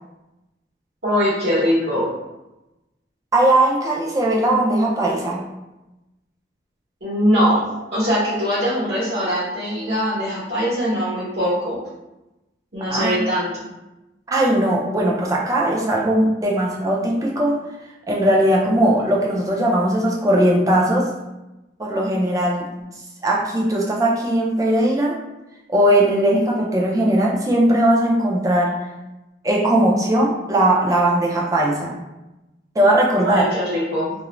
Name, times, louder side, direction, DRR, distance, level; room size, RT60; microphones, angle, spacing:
voice 1, 1.0-2.1 7.0-7.7 7.9-11.8 12.7-13.7 33.2-34.1, equal, 75° right, -10 dB, 0.9 m, -21 dB
voice 2, 3.3-5.4 12.9-13.2 14.3-17.6 18.1-21.1 21.8-22.7 23.2-25.2 25.7-28.7 29.4-32.0 32.8-33.5, right 1 dB, 20° right, -2 dB, 0.4 m, -19 dB
2.4 x 2.0 x 3.0 m, 0.99 s
head